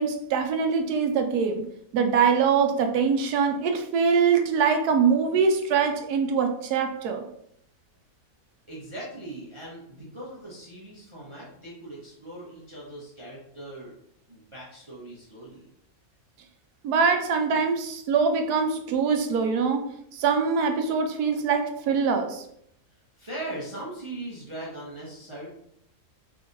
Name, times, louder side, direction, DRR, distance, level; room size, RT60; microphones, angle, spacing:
voice 1, 0.0-1.6 1.9-7.2 16.8-19.8 20.1-22.4, right 5 dB, 75° right, 6 dB, 1.1 m, -23 dB
voice 2, 8.7-13.9 14.3-15.6 23.2-25.5, right 1 dB, 25° right, -6 dB, 0.8 m, -39 dB
4.7 x 3.4 x 2.6 m, 0.72 s
omnidirectional pair, 1.7 m